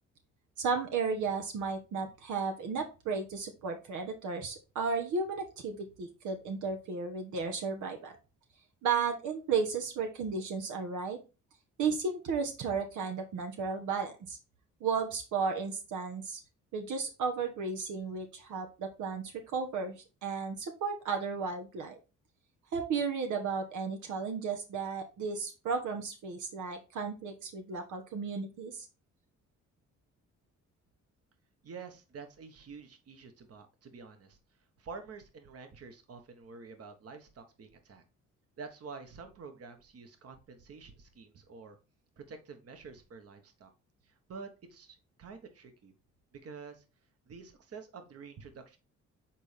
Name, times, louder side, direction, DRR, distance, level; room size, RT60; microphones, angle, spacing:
voice 1, 0.6-8.2 8.8-11.2 11.8-14.4 14.8-16.4 16.7-22.0 22.7-28.9, right 5 dB, 80° right, 4 dB, 1.3 m, -34 dB
voice 2, 31.6-34.4 34.8-38.0 38.6-41.8 42.2-43.7 44.0-45.9 46.3-46.8 47.3-48.8, right 5 dB, 50° right, 7 dB, 1.4 m, -48 dB
7.3 x 4.3 x 3.5 m, 0.30 s
cardioid pair, 90°, 30 cm